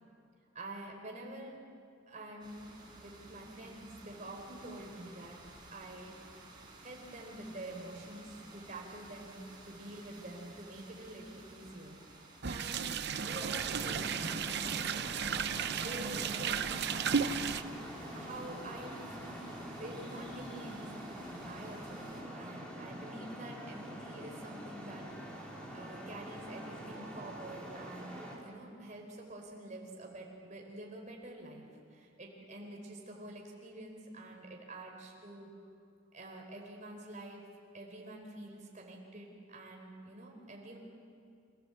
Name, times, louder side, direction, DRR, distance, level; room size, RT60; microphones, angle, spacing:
voice 1, 0.5-1.6 2.1-2.7 3.0-5.4 5.7-6.2 6.8-12.0 12.5-12.8 13.2-14.8 15.7-16.6 18.1-19.5 19.8-31.6 31.9-35.5 36.1-37.4 37.7-40.8, right 1 dB, 35° right, 0 dB, 4.1 m, -47 dB
sound 1, 2.4-22.2, right 2 dB, 20° right, 4.7 m, -55 dB
sound 2, 12.4-17.6, right 6 dB, 55° right, 0.7 m, -34 dB
Traffic noise roadway noise, 13.2-28.4, equal, 5° left, 3.5 m, -45 dB
27.0 x 16.5 x 8.1 m, 2.4 s
head